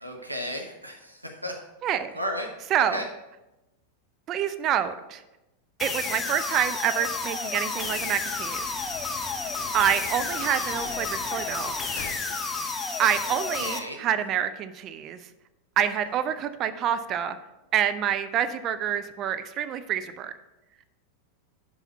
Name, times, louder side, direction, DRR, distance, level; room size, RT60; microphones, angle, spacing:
voice 1, 0.0-1.6 2.1-2.5 2.8-3.1 13.2-14.0, equal, 85° right, 2 dB, 0.8 m, -34 dB
voice 2, 2.7-3.0 4.3-5.2 5.8-8.7 9.7-11.9 13.0-15.2 15.8-17.4 17.7-20.3, right 9 dB, 35° right, 11 dB, 0.4 m, -27 dB
sound 1, 5.8-13.8, left 4 dB, 15° left, 0.7 m, -31 dB
sound 2, 7.5-12.4, left 5 dB, 40° left, 1.1 m, -44 dB
5.7 x 5.6 x 5.8 m, 1.0 s
figure-of-eight pair, 90°, 0 cm